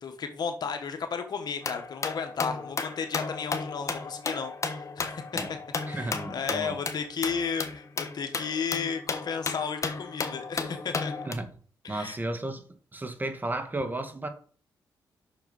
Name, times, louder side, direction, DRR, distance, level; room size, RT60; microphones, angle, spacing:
voice 1, 0.0-5.0 5.3-5.6 5.9-11.1 11.8-12.2, left 6 dB, 65° left, 1.4 m, -33 dB
sound 1, 1.6-11.3, left 4 dB, 40° left, 1.4 m, -34 dB
voice 2, 5.9-6.8 11.2-11.5 11.9-12.6 12.9-14.3, right 2 dB, 25° right, 1.7 m, -33 dB
6.9 x 6.3 x 5.3 m
cardioid pair, 65°, 8 cm